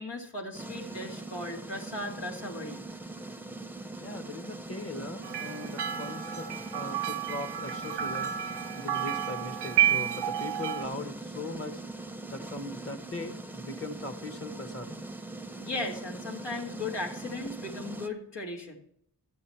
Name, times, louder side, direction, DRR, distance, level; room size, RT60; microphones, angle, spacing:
voice 1, 0.0-2.8 15.6-18.8, left 2 dB, 85° left, 0 dB, 2.0 m, -37 dB
sound 1, 0.5-18.1, right 2 dB, 5° right, 0.6 m, -41 dB
voice 2, 4.0-8.3 8.7-11.8 12.3-15.1, left 2 dB, 35° left, 9 dB, 1.0 m, -40 dB
sound 2, 5.2-10.8, right 11 dB, 75° right, 0.5 m, -31 dB
13.0 x 6.9 x 4.4 m, 0.69 s
cardioid pair, 45°, 41 cm